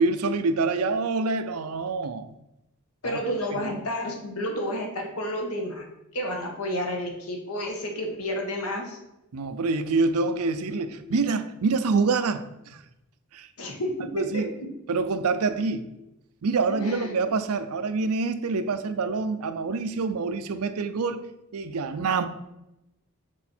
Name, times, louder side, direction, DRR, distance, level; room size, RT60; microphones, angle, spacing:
voice 1, 0.0-2.2 3.0-3.2 3.5-3.8 9.3-12.8 13.3-13.5 14.1-14.5 14.9-15.9 16.4-21.3 21.5-22.3, right 4 dB, 80° right, 11 dB, 0.5 m, -26 dB
voice 2, 3.0-9.0 13.6-14.4 16.8-17.2, equal, 80° left, 2 dB, 1.4 m, -31 dB
6.2 x 4.4 x 4.3 m, 0.89 s
head